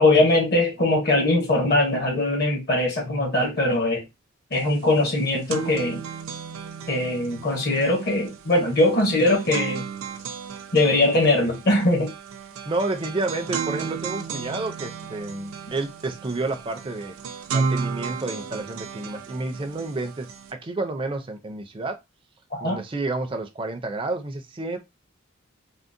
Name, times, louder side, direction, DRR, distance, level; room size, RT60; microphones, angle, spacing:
voice 1, 0.0-4.0 4.5-6.0 6.9-9.8 10.7-12.1 22.5-22.8, left 2 dB, 50° left, 0.9 m, -21 dB
sound 1, 4.6-4.7 5.0-20.5, right 5 dB, 80° right, 0.4 m, -34 dB
voice 2, 12.7-17.2 17.5-22.0 22.6-24.8, right 2 dB, 25° right, 0.4 m, -30 dB
3.6 x 2.0 x 2.5 m
head